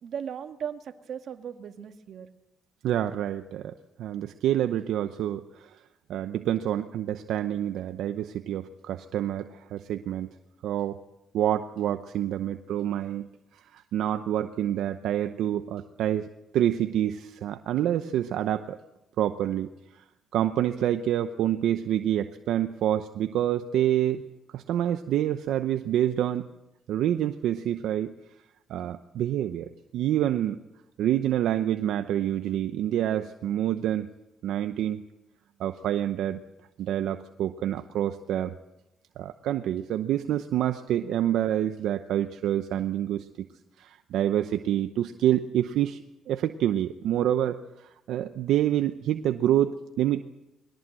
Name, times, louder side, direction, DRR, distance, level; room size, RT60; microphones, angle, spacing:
voice 1, 0.0-2.3, right 8 dB, 65° right, 7 dB, 1.8 m, -37 dB
voice 2, 2.8-5.8 6.1-10.3 10.6-11.0 11.3-13.3 13.5-16.3 16.5-18.8 19.2-19.7 19.9-20.0 20.3-24.2 24.5-26.5 26.9-28.1 28.7-30.6 31.0-34.1 34.4-35.0 35.6-36.4 36.8-38.6 39.2-43.3 43.8-50.2, right 11 dB, 80° right, 9 dB, 0.8 m, -27 dB
21.5 x 17.5 x 7.8 m, 0.92 s
cardioid pair, 90°, 0 cm